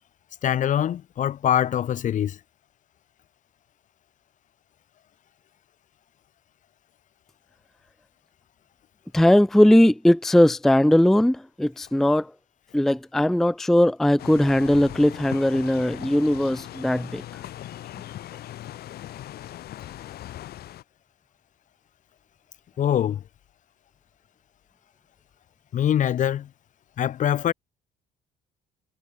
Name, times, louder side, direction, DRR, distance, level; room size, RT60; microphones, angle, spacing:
voice 1, 0.4-2.4 22.8-23.2 25.7-26.5 27.0-27.5, left 10 dB, 50° left, 0.8 m, -23 dB
voice 2, 9.1-12.3 12.7-17.2, left 1 dB, ahead, 0.4 m, -19 dB
sound 1, 14.2-20.8, left 13 dB, 70° left, 4.6 m, -39 dB
cardioid pair, 110°, 17 cm